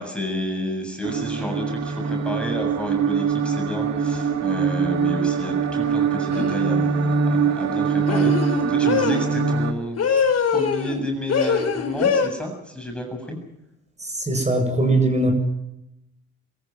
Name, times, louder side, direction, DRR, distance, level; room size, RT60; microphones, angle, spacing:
voice 1, 0.0-10.0 10.5-13.4, left 1 dB, 5° left, 2 dB, 7.7 m, -31 dB
sound 1, 1.0-9.7, right 6 dB, 60° right, 2.4 m, -23 dB
sound 2, 6.3-6.6 8.1-9.3 10.0-11.0 11.3-12.3, left 6 dB, 55° left, 5.2 m, -22 dB
voice 2, 14.0-15.3, right 2 dB, 20° right, 4 dB, 7.8 m, -21 dB
24.0 x 14.5 x 9.6 m, 0.86 s
cardioid pair, 90°, 30 cm